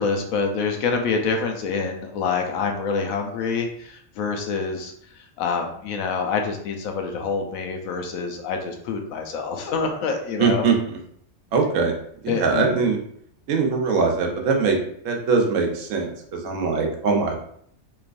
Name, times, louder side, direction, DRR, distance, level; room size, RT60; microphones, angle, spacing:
voice 1, 0.0-4.9 5.4-10.6 12.3-12.6, left 5 dB, 85° left, 3 dB, 1.0 m, -26 dB
voice 2, 10.4-11.0 11.5-11.9 12.2-13.0 13.5-14.8 15.0-17.4, right 4 dB, 70° right, 1 dB, 1.0 m, -22 dB
3.2 x 3.0 x 2.4 m, 0.66 s
omnidirectional pair, 1.4 m